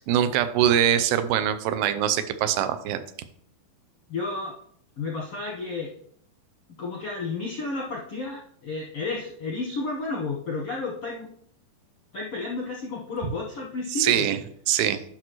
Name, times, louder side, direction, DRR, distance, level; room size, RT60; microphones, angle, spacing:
voice 1, 0.0-3.0 13.9-14.4 14.7-15.0, right 10 dB, 85° right, 11 dB, 2.5 m, -23 dB
voice 2, 4.1-4.5 5.0-5.9 6.8-11.3 12.1-14.3, left 3 dB, 70° left, -3 dB, 1.4 m, -32 dB
10.5 x 6.0 x 3.1 m, 0.63 s
omnidirectional pair, 4.2 m